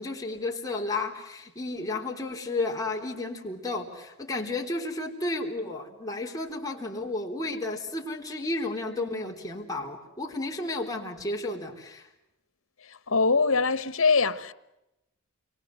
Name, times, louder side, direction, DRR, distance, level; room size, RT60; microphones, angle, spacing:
voice 1, 0.0-12.1, left 2 dB, 15° left, 3.9 m, -32 dB
voice 2, 12.8-14.5, left 4 dB, 90° left, 1.3 m, -23 dB
29.5 x 24.0 x 7.9 m
head